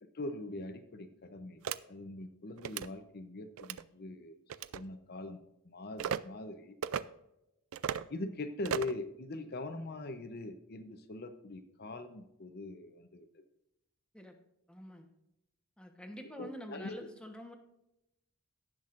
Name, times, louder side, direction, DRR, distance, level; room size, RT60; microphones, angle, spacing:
voice 1, 0.0-4.4 4.7-6.8 8.1-13.4 16.4-17.1, left 2 dB, 45° left, 8 dB, 0.7 m, -42 dB
sound 1, 1.6-1.8 2.6-2.9 3.6-3.8 4.5-4.8 6.0-6.2 6.8-7.0 7.7-8.1 8.6-9.0, right 8 dB, 70° right, 0.4 m, -35 dB
voice 2, 14.7-15.1 15.8-17.6, equal, 5° left, 4 dB, 1.1 m, -47 dB
18.0 x 6.2 x 2.5 m, 0.88 s
head